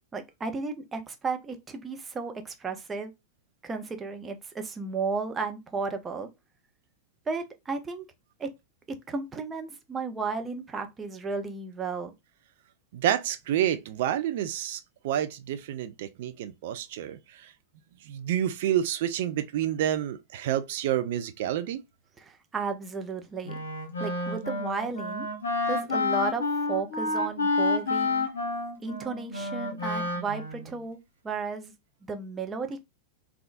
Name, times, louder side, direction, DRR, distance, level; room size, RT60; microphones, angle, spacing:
voice 1, 0.1-3.1 3.6-6.3 7.3-8.0 8.4-8.5 9.1-12.1 22.2-23.6 24.0-25.3 25.7-28.3 28.8-31.0 31.2-31.7 32.0-32.8, right 4 dB, 20° right, 0.6 m, -34 dB
voice 2, 12.9-17.5 18.0-21.8, right 11 dB, 55° right, 0.3 m, -29 dB
Wind instrument woodwind instrument, 23.5-30.8, left 3 dB, 65° left, 1.0 m, -29 dB
3.5 x 2.3 x 2.5 m
figure-of-eight pair, 90°, 0 cm